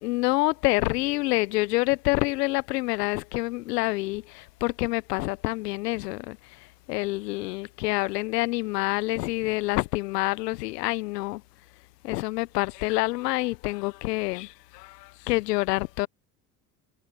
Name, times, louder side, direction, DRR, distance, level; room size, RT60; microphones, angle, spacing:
voice 1, 0.0-11.4 12.0-16.1, left 20 dB, 80° left, 0.9 m, -27 dB
hypercardioid pair, 70°, 48 cm